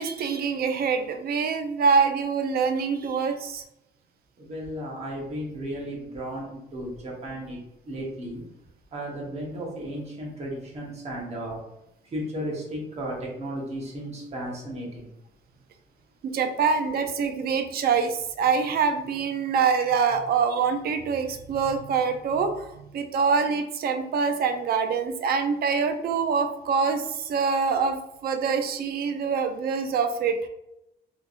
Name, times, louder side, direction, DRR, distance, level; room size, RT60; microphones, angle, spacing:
voice 1, 0.0-3.6 16.2-30.4, right 5 dB, 55° right, 7 dB, 0.4 m, -25 dB
voice 2, 4.4-8.4 8.9-11.6 12.0-15.1, equal, 35° right, -3 dB, 1.1 m, -34 dB
3.3 x 2.9 x 2.5 m, 0.83 s
cardioid pair, 140°, 19 cm